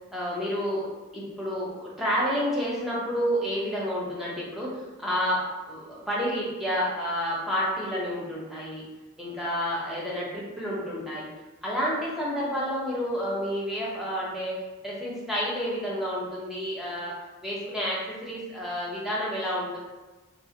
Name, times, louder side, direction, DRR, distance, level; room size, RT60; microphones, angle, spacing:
voice 1, 0.1-0.9 1.1-8.8 9.2-11.3 11.6-14.5 14.8-17.1 17.4-19.8, equal, ahead, -6 dB, 0.6 m, -30 dB
2.7 x 2.4 x 2.6 m, 1.2 s
head